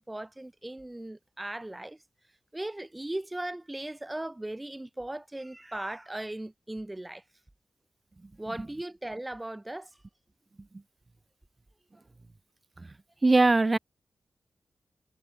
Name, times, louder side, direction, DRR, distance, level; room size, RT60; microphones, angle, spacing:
voice 1, 0.0-2.0 2.5-7.2 8.4-9.9, right 1 dB, 20° right, 0.8 m, -38 dB
voice 2, 13.2-13.8, right 3 dB, 35° right, 0.4 m, -20 dB
cardioid pair, 65°, 0 cm